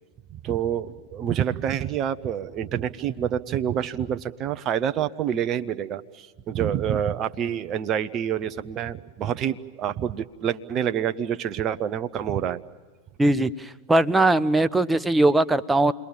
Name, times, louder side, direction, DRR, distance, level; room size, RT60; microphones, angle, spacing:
voice 1, 0.3-12.6, right 9 dB, 30° right, 11 dB, 1.0 m, -27 dB
voice 2, 13.2-15.9, right 2 dB, 10° right, 13 dB, 0.8 m, -20 dB
30.0 x 22.0 x 7.3 m, 1.3 s
figure-of-eight pair, 90°, 0 cm